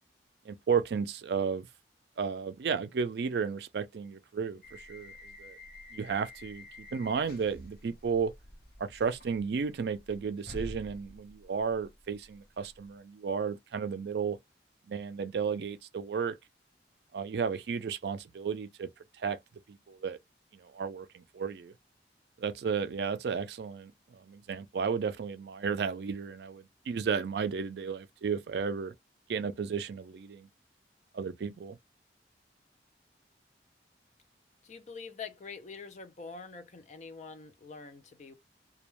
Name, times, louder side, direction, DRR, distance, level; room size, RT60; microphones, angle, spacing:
voice 1, 0.5-1.7 2.2-5.1 5.4-5.6 5.9-8.3 8.8-14.4 14.9-16.4 17.1-18.9 19.2-19.4 19.7-20.2 20.5-21.7 22.4-28.9 29.3-30.5 31.1-31.8, right 6 dB, 65° right, 0.3 m, -33 dB
sound 1, 4.6-13.0, left 1 dB, 55° left, 0.9 m, -49 dB
voice 2, 34.6-38.3, left 5 dB, 40° left, 0.4 m, -45 dB
2.3 x 2.1 x 3.0 m
head